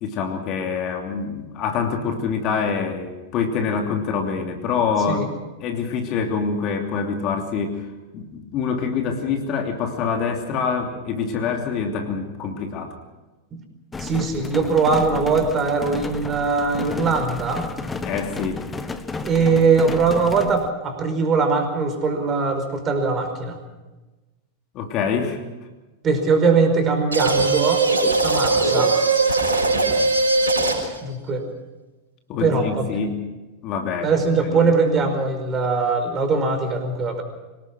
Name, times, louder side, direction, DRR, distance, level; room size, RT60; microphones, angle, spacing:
voice 1, 0.0-5.2 5.6-7.9 8.1-13.0 18.0-18.6 24.7-25.4 32.3-33.2 33.6-34.1 34.5-34.7, left 5 dB, 40° left, 3 dB, 2.9 m, -25 dB
sound 1, 13.9-20.7, left 4 dB, 15° left, 1.4 m, -32 dB
voice 2, 14.0-17.7 19.2-23.6 26.0-27.9 28.2-28.9 29.3-29.4 31.0-31.4 32.4-32.9 34.0-37.2, right 4 dB, 25° right, 5 dB, 5.1 m, -21 dB
sound 2, 27.1-31.0, right 3 dB, 80° right, 5.8 m, -20 dB
25.5 x 19.0 x 6.2 m, 1.1 s
figure-of-eight pair, 95°, 0 cm